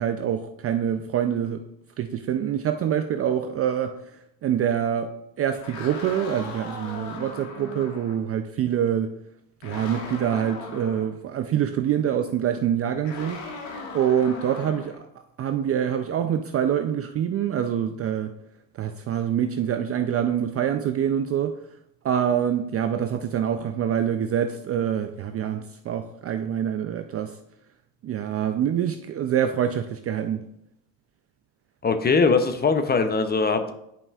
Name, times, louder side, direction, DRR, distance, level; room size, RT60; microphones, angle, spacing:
voice 1, 0.0-1.6 2.0-4.0 4.4-5.1 5.4-9.1 9.6-13.4 13.9-15.0 15.4-18.3 18.8-21.6 22.0-27.4 28.0-30.4, right 9 dB, 35° right, 7 dB, 0.4 m, -25 dB
sound 1, 5.5-8.2 9.6-11.1 13.0-15.0, left 3 dB, 75° left, 1.7 m, -38 dB
voice 2, 31.8-33.7, left 4 dB, 20° left, 8 dB, 0.6 m, -21 dB
9.8 x 5.4 x 2.4 m, 0.78 s
supercardioid pair, 95°, 47 cm